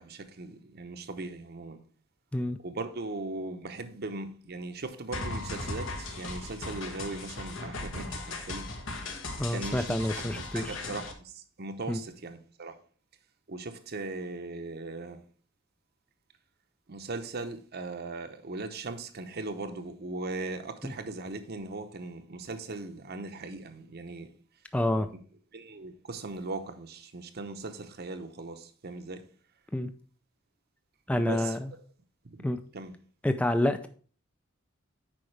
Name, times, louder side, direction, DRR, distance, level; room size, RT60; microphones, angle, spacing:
voice 1, 0.0-1.8 2.6-8.7 9.5-12.7 13.5-15.2 16.9-24.3 24.9-25.2 25.5-29.2 31.1-31.6 32.4-32.5 32.7-32.9, right 3 dB, 50° right, 0.8 m, -39 dB
sound 1, 5.1-11.1, left 2 dB, 75° left, 1.4 m, -37 dB
voice 2, 9.4-10.8 11.9-12.0 20.8-20.9 24.7-25.1 29.7-29.9 31.1-31.6 32.4-32.6 33.2-33.9, left 1 dB, 5° left, 0.4 m, -28 dB
8.6 x 5.2 x 3.2 m
head